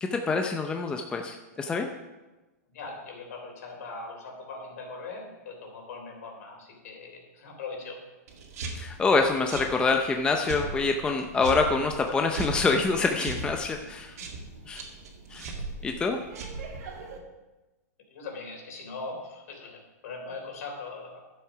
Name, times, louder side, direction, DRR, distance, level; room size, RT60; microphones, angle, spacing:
voice 1, 0.0-1.9 8.7-14.1 14.7-14.8 15.3-15.5 15.8-16.2, left 4 dB, 10° left, 4 dB, 0.6 m, -26 dB
voice 2, 2.7-8.0 14.2-14.3 18.1-21.2, left 3 dB, 65° left, 1 dB, 3.5 m, -40 dB
sound 1, 8.3-17.2, right 3 dB, 70° right, 2.2 m, -38 dB
11.5 x 7.4 x 4.9 m, 1.1 s
hypercardioid pair, 150°, 9 cm